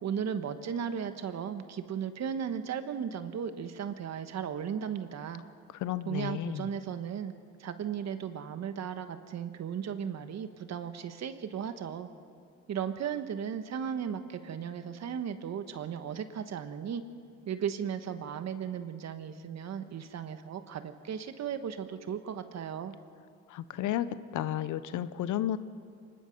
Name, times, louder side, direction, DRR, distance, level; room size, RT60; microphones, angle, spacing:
voice 1, 0.0-5.4 6.1-7.3 7.6-12.1 12.7-17.0 17.5-22.9, right 8 dB, 60° right, 9 dB, 1.3 m, -36 dB
voice 2, 5.8-6.7 23.5-24.1 24.3-25.6, left 12 dB, 80° left, 15 dB, 0.8 m, -32 dB
24.0 x 20.0 x 5.4 m, 2.3 s
cardioid pair, 90°, 30 cm